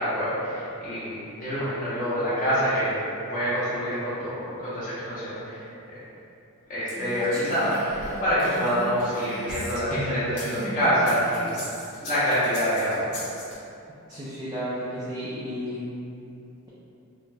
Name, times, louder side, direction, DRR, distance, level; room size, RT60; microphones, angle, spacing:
voice 1, 0.0-3.0 3.3-5.6 6.7-11.5 12.0-13.1, equal, 35° left, -12 dB, 0.7 m, -26 dB
Female speech woman speaking, 6.9-10.1 10.4-11.9, right 1 dB, 80° right, 0.7 m, -38 dB
sound 1, 7.1-10.5 10.9-13.5, left 1 dB, 85° left, 0.7 m, -37 dB
voice 2, 14.1-15.9, equal, 20° right, -10 dB, 0.3 m, -33 dB
3.9 x 2.1 x 2.2 m, 2.7 s
head